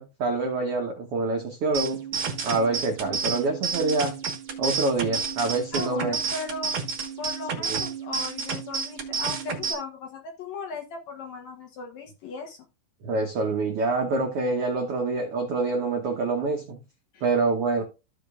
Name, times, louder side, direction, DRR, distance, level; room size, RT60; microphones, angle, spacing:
voice 1, 0.0-2.0 2.4-4.2 4.6-6.2 7.6-7.8 13.0-16.8 17.2-17.8, right 3 dB, 90° right, 1.2 m, -26 dB
sound 1, 1.7-9.7, right 6 dB, 55° right, 1.5 m, -30 dB
voice 2, 5.7-6.8 7.2-12.6 17.1-17.2, left 4 dB, 70° left, 1.8 m, -37 dB
15.0 x 5.1 x 2.4 m
omnidirectional pair, 4.3 m